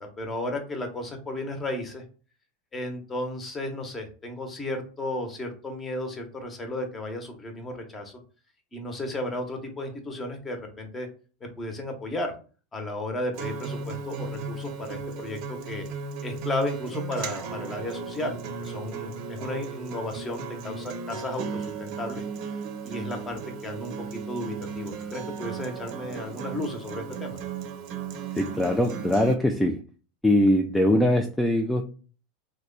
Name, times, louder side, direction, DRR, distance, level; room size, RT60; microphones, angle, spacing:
voice 1, 0.2-2.0 2.7-8.2 8.7-11.1 11.6-12.3 12.7-15.8 16.2-22.2 22.8-23.9 24.3-27.4, left 1 dB, 20° left, 5 dB, 0.9 m, -34 dB
Acoustic guitar, 13.3-29.3, right 5 dB, 55° right, 0.6 m, -36 dB
voice 2, 28.4-29.8 30.2-31.8, left 1 dB, 5° left, 3 dB, 0.3 m, -22 dB
3.0 x 2.2 x 3.7 m, 0.38 s
supercardioid pair, 120°, 0 cm